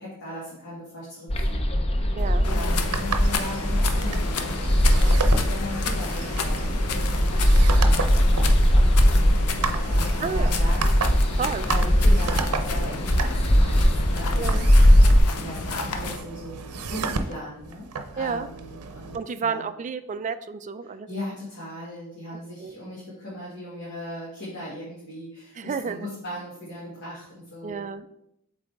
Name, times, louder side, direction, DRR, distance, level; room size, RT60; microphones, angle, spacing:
voice 1, 0.0-1.6 2.4-14.6 15.4-17.9 18.1-19.6 20.8-27.9, equal, 55° left, -7 dB, 1.8 m, -38 dB
sound 1, 1.3-15.2, equal, 25° left, 0.6 m, -20 dB
voice 2, 2.2-2.5 10.2-10.5 11.3-11.7 12.1-12.2 14.4-14.7 18.2-18.5 19.1-21.1 22.6-22.7 25.6-26.1 27.6-28.1, right 5 dB, 35° right, 11 dB, 0.3 m, -31 dB
sound 2, 2.2-19.2, right 4 dB, 75° right, 0.6 m, -34 dB
sound 3, 2.4-16.2, left 5 dB, 80° left, 0.7 m, -33 dB
7.5 x 4.0 x 3.4 m, 0.78 s
head